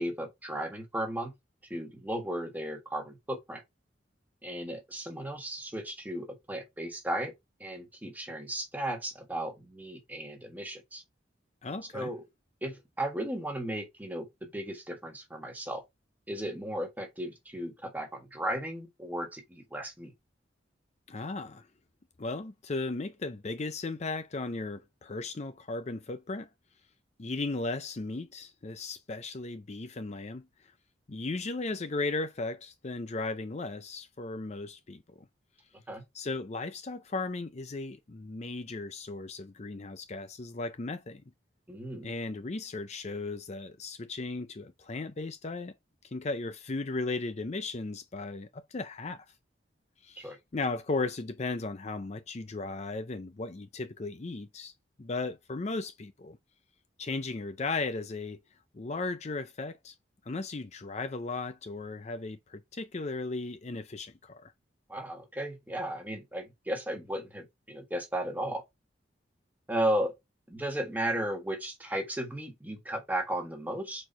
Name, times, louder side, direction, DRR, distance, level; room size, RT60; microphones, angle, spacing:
voice 1, 0.0-1.3 1.7-3.6 4.4-7.3 7.6-11.0 11.9-12.2 12.6-15.8 16.3-20.1 35.9-36.0 41.7-42.1 50.2-50.4 64.9-68.6 69.7-70.1 70.5-74.1, right 1 dB, 10° right, 1.6 m, -35 dB
voice 2, 11.6-12.1 21.1-21.7 22.2-26.5 27.2-30.7 31.1-35.0 36.1-41.2 42.0-45.7 46.1-49.3 50.0-54.7 55.0-56.4 57.0-58.4 58.7-59.9 60.3-64.5, left 3 dB, 40° left, 0.5 m, -36 dB
4.5 x 4.3 x 5.0 m
head